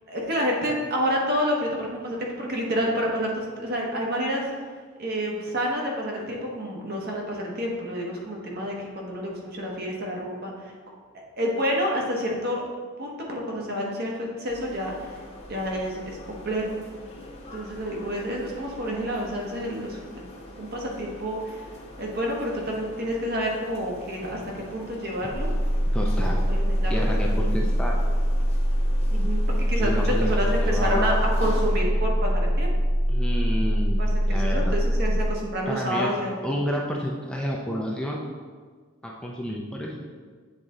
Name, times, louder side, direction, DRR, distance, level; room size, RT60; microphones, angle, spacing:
voice 1, 0.1-4.5 5.0-10.7 11.4-12.6 13.0-15.2 15.5-16.8 17.5-20.3 20.6-21.7 22.0-25.5 26.2-27.7 29.1-32.7 34.0-36.3, equal, 50° right, -1 dB, 1.2 m, -29 dB
sound 1, 14.5-31.8, left 1 dB, 30° left, 0.9 m, -44 dB
sound 2, 25.3-35.3, equal, 70° left, 0.9 m, -23 dB
voice 2, 25.9-26.4 26.9-28.0 29.8-31.3 33.1-34.8 35.7-36.1 36.4-38.2 39.0-40.0, equal, 5° left, -2 dB, 0.5 m, -30 dB
8.0 x 4.1 x 3.7 m, 1.5 s
head